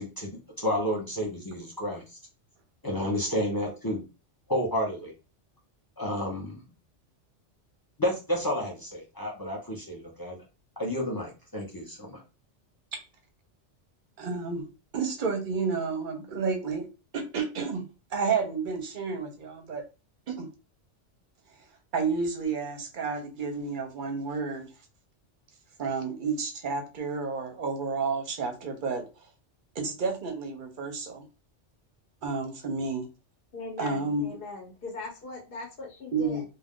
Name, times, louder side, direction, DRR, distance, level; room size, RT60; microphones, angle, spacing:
voice 1, 0.0-2.0 2.8-4.0 4.5-5.1 6.0-6.6 8.0-10.4 10.8-12.2, equal, 25° left, 0.5 m, -31 dB
voice 2, 14.2-14.7 14.9-16.9 17.1-17.8 18.1-19.8 20.3-20.5 21.9-24.7 25.8-29.0 29.8-31.2 32.2-33.1 33.8-34.3 36.1-36.4, right 4 dB, 50° right, 0.7 m, -30 dB
voice 3, 33.5-36.4, left 3 dB, 50° left, 0.9 m, -40 dB
2.4 x 2.2 x 3.5 m
omnidirectional pair, 1.2 m